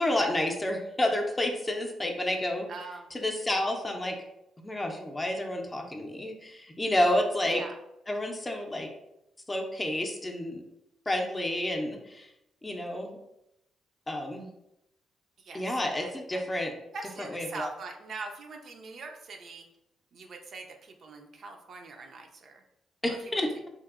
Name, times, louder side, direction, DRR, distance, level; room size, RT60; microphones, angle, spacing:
voice 1, 0.0-2.7 3.1-4.2 4.6-7.6 8.1-8.9 9.5-10.6 11.1-12.3 12.6-13.2 14.1-14.5 15.5-16.7 17.2-17.7 23.0-23.5, left 1 dB, 20° left, 2 dB, 0.5 m, -30 dB
voice 2, 2.7-3.1 7.4-7.8 15.4-15.6 16.0-16.4 16.9-19.7 20.1-22.6 23.3-23.4, right 3 dB, 60° right, 3 dB, 0.4 m, -42 dB
2.8 x 2.5 x 2.4 m, 0.86 s
supercardioid pair, 65°, 0 cm